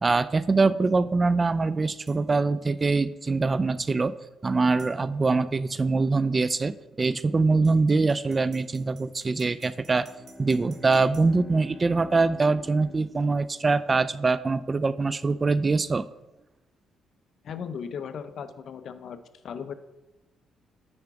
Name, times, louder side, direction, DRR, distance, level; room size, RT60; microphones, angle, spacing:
voice 1, 0.0-10.0 10.4-16.1, right 3 dB, 30° right, 15 dB, 0.3 m, -24 dB
sound 1, 2.1-2.2 4.8-5.0 7.6-11.3, right 4 dB, 50° right, 1.6 m, -55 dB
Bowed string instrument, 9.7-14.0, left 1 dB, 20° left, 0.5 m, -47 dB
voice 2, 17.4-19.2 19.4-19.7, left 7 dB, 65° left, 11 dB, 0.6 m, -36 dB
8.7 x 4.7 x 4.6 m, 1.0 s
cardioid pair, 90°, 0 cm